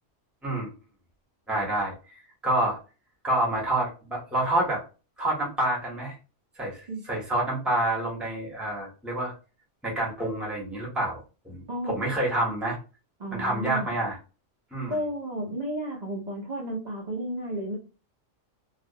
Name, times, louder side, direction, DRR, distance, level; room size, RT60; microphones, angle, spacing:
voice 1, 1.5-1.9 2.4-2.8 3.2-4.8 5.2-6.2 6.6-9.3 9.8-11.2 11.4-12.8 13.3-14.2 14.7-15.0, right 1 dB, ahead, -4 dB, 0.7 m, -28 dB
voice 2, 13.2-13.9 14.9-17.8, right 1 dB, 50° right, -3 dB, 0.5 m, -32 dB
2.4 x 2.0 x 2.6 m, 0.33 s
omnidirectional pair, 1.3 m